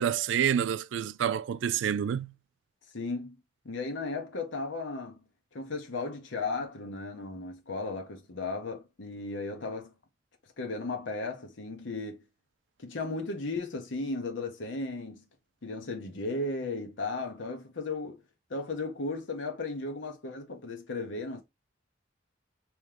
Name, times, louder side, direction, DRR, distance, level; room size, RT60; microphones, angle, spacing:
voice 1, 0.0-2.3, right 9 dB, 75° right, 0.3 m, -28 dB
voice 2, 2.9-3.4 3.6-5.2 5.5-9.9 10.6-12.2 12.8-15.2 15.6-18.2 18.5-21.4, left 3 dB, 80° left, 0.9 m, -35 dB
3.6 x 3.1 x 3.4 m
head